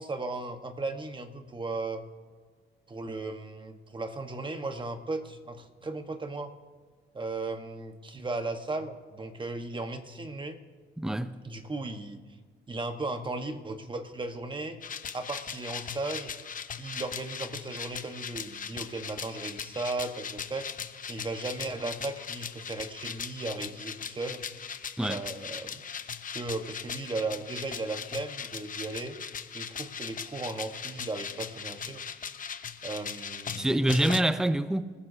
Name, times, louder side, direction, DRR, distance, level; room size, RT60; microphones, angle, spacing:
voice 1, 0.0-2.0 2.9-6.5 7.1-10.6 11.4-12.2 12.7-14.8 15.1-16.4 16.8-20.7 21.1-24.4 25.1-25.8 26.3-29.2 29.5-32.0 32.8-33.9, right 2 dB, 25° right, 1.3 m, -36 dB
voice 2, 11.0-11.4 25.0-25.2 33.5-34.9, right 1 dB, 5° right, 0.6 m, -26 dB
sound 1, 14.8-34.2, left 7 dB, 45° left, 0.9 m, -39 dB
27.0 x 15.0 x 2.8 m
cardioid pair, 90°, 20 cm